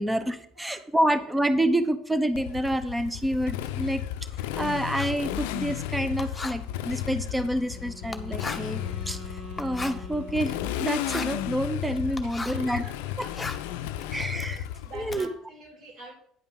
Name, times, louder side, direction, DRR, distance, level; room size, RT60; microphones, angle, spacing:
voice 1, 0.0-4.0 4.6-9.2 9.6-12.8 13.2-13.5 14.1-14.6 14.9-15.3, right 1 dB, 10° right, 10 dB, 0.9 m, -28 dB
Motorcycle, 2.4-15.2, left 12 dB, 75° left, 0.5 m, -34 dB
Writing, 2.5-12.7 13.1-15.3, left 3 dB, 20° left, 1.0 m, -40 dB
Wind instrument woodwind instrument, 7.3-11.2, equal, 40° right, 2.3 m, -44 dB
voice 2, 12.2-13.4 13.7-16.1, right 2 dB, 55° right, -1 dB, 4.0 m, -48 dB
9.9 x 5.3 x 6.1 m, 0.66 s
hypercardioid pair, 65°, 0 cm